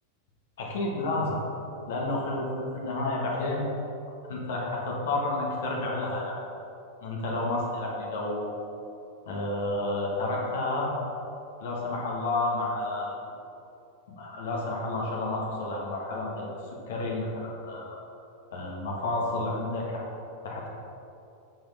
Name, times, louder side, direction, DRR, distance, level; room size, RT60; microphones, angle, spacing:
voice 1, 0.6-1.4 1.9-3.6 4.3-6.4 7.0-8.6 9.3-10.9 11.6-13.2 14.1-16.5 16.9-18.0 18.5-20.0 20.4-20.7, left 2 dB, 60° left, -2 dB, 1.7 m, -30 dB
9.9 x 7.0 x 3.5 m, 2.7 s
figure-of-eight pair, 90°, 0 cm